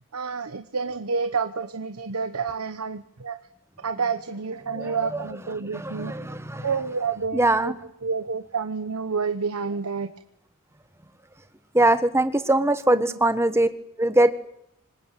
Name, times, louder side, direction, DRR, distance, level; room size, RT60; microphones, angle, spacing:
voice 1, 0.1-3.4 3.8-6.1 6.6-10.1 12.9-13.2, right 5 dB, 90° right, 10 dB, 1.1 m, -29 dB
voice 2, 5.7-6.7 7.3-7.7 11.7-13.7 14.0-14.3, right 1 dB, 10° right, 11 dB, 1.3 m, -21 dB
26.0 x 20.0 x 9.0 m, 0.78 s
head